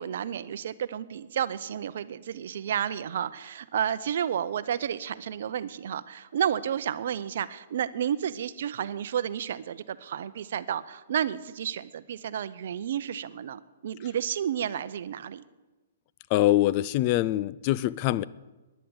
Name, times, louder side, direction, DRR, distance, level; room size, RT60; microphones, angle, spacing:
voice 1, 0.0-15.4, right 9 dB, 65° right, 15 dB, 0.6 m, -31 dB
voice 2, 16.3-18.2, left 15 dB, 40° left, 18 dB, 0.4 m, -24 dB
10.5 x 10.0 x 8.7 m, 1.1 s
hypercardioid pair, 130°, 0 cm